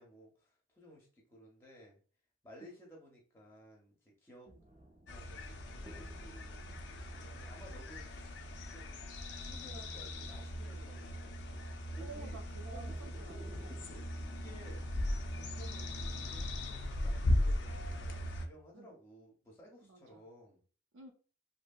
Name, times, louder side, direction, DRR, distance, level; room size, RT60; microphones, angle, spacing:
voice 1, 0.0-2.0 2.4-4.5 5.1-6.6 7.1-8.4 8.7-9.0 9.4-11.6 11.9-12.4 12.7-13.2 13.7-20.6, equal, 10° left, -2 dB, 0.6 m, -56 dB
sound 1, 4.4-16.4, right 1 dB, 30° right, 0.5 m, -59 dB
sound 2, 5.1-18.5, left 1 dB, 60° left, 0.4 m, -38 dB
voice 2, 12.0-13.8 15.0-15.1 18.7-18.9 19.8-20.2 20.9-21.1, right 3 dB, 85° right, 4 dB, 0.5 m, -52 dB
2.7 x 2.6 x 2.2 m, 0.39 s
head